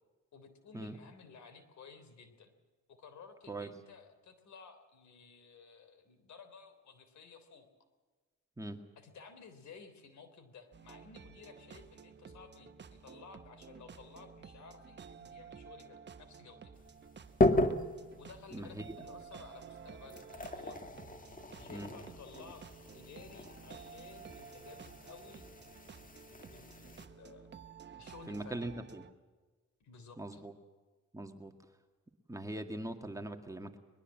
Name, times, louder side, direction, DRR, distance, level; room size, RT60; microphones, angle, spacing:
voice 1, 0.3-2.5 2.9-7.7 9.0-16.7 18.2-20.8 21.5-22.7 22.9-25.5 26.5-27.5 28.0-28.7 29.8-30.4, left 5 dB, 65° left, 10 dB, 3.6 m, -55 dB
sound 1, 10.7-29.1, right 6 dB, 35° right, 1.3 m, -53 dB
sound 2, 16.7-27.1, left 2 dB, 25° left, 2.0 m, -36 dB
voice 2, 18.5-18.8 21.7-21.9 28.3-29.0 30.2-30.5 31.1-31.5 32.3-33.8, right 1 dB, 10° right, 5 dB, 2.0 m, -41 dB
21.5 x 21.5 x 7.5 m, 1.3 s
cardioid pair, 90°, 30 cm